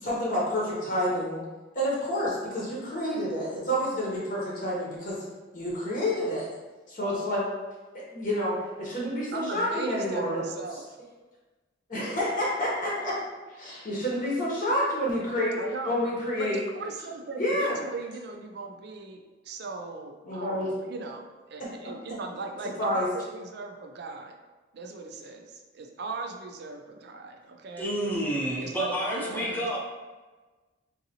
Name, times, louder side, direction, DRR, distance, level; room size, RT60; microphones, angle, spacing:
voice 1, 0.0-1.4 1.7-5.2 5.5-6.5 6.9-7.5 7.9-10.4 10.7-10.8 11.9-13.1 13.5-15.6 15.9-16.6 17.4-17.8 20.2-20.7 21.6-21.7 22.8-23.1, equal, 45° left, -5 dB, 0.8 m, -29 dB
voice 2, 9.3-10.8 15.6-16.0 16.4-19.2 19.4-24.4 24.7-27.9 28.6-29.8, right 3 dB, 55° right, 3 dB, 0.4 m, -38 dB
voice 3, 27.8-29.8, equal, 10° left, -4 dB, 0.6 m, -29 dB
3.8 x 2.6 x 2.8 m, 1.3 s
head